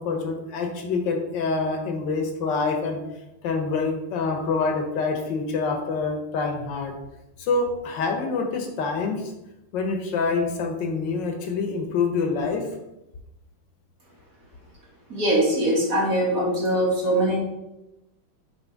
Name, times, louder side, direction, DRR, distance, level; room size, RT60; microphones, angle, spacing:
voice 1, 0.0-3.0 3.4-6.9 7.4-9.3 9.7-12.7, left 4 dB, 65° left, 4 dB, 1.4 m, -26 dB
voice 2, 15.1-17.4, right 1 dB, 40° right, -5 dB, 1.9 m, -22 dB
7.0 x 3.2 x 4.5 m, 0.94 s
omnidirectional pair, 2.4 m